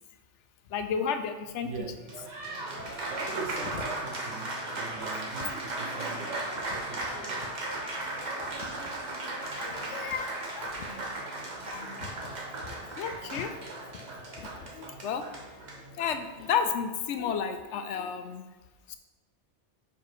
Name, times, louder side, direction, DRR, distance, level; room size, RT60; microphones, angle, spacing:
voice 1, 0.7-1.7 3.7-3.8 5.4-5.5 8.3-8.5 9.6-11.1 11.6-12.1 13.0-13.5 14.4-14.5 14.7-15.2 16.0-18.4 18.9-19.0, left 7 dB, 80° left, 8 dB, 0.9 m, -32 dB
voice 2, 1.6-2.3 3.1-7.5, right 4 dB, 90° right, 4 dB, 1.2 m, -41 dB
Applause, 1.9-16.6, right 2 dB, 40° right, 1.1 m, -36 dB
5.6 x 4.6 x 5.0 m, 1.2 s
omnidirectional pair, 1.2 m